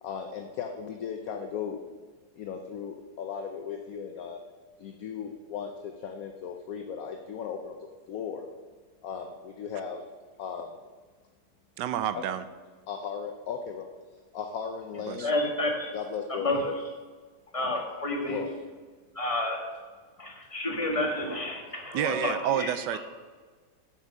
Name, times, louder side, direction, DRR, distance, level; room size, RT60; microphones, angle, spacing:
voice 1, 0.0-1.8 2.4-4.4 4.8-7.8 8.1-8.5 9.0-10.0 10.4-10.8 12.1-12.3 12.9-13.9 14.3-15.3 15.9-16.5 18.3-18.6, left 7 dB, 65° left, 4 dB, 1.0 m, -36 dB
voice 2, 11.8-12.4 15.1-15.3 21.9-23.0, right 11 dB, 85° right, 13 dB, 1.2 m, -29 dB
voice 3, 15.2-15.9 16.3-16.7 17.5-18.4 19.1-19.6 20.2-23.0, left 1 dB, 20° left, 1 dB, 1.5 m, -30 dB
7.8 x 6.3 x 7.1 m, 1.4 s
omnidirectional pair, 1.9 m